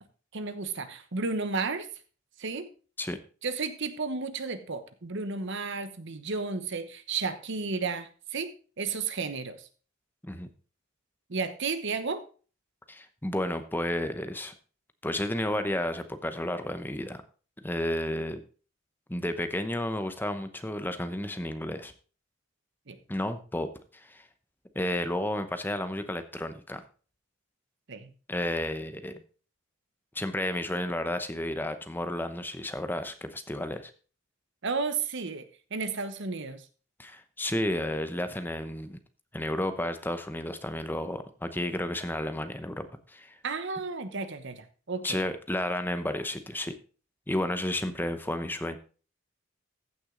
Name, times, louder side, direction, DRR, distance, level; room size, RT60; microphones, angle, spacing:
voice 1, 0.3-1.9 2.4-2.7 3.4-9.7 11.3-12.2 22.9-23.0 27.9-28.1 34.6-35.4 35.7-36.6 43.4-45.2, right 4 dB, 55° right, 11 dB, 1.0 m, -33 dB
voice 2, 12.9-14.5 15.0-17.2 17.6-18.4 19.1-21.9 23.1-24.3 24.7-26.8 28.3-29.2 30.1-33.9 37.0-39.0 39.3-43.4 45.0-46.7 47.3-48.8, left 1 dB, 10° left, 9 dB, 0.8 m, -32 dB
14.5 x 6.2 x 3.8 m, 0.38 s
head